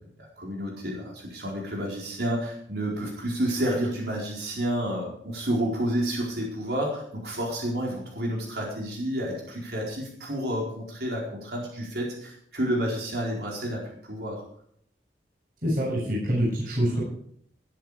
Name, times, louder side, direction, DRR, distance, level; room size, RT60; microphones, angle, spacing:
voice 1, 0.2-14.4, equal, 70° right, -2 dB, 4.5 m, -30 dB
voice 2, 15.6-17.0, equal, 50° right, -5 dB, 7.3 m, -25 dB
19.5 x 9.1 x 5.1 m, 0.66 s
head